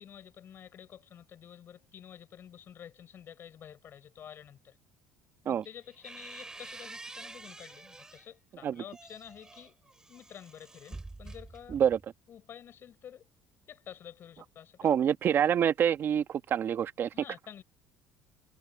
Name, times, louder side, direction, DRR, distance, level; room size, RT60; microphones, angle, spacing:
voice 1, 0.0-4.8 5.4-9.8 10.1-11.8 12.3-13.3 13.7-14.8 17.1-17.6, left 9 dB, 40° left, 4.0 m, -50 dB
sound 1, 5.6-8.3 8.8-12.1, right 2 dB, 10° right, 7.0 m, -48 dB
voice 2, 14.8-17.1, right 9 dB, 40° right, 1.2 m, -26 dB
cardioid pair, 140°, 6 cm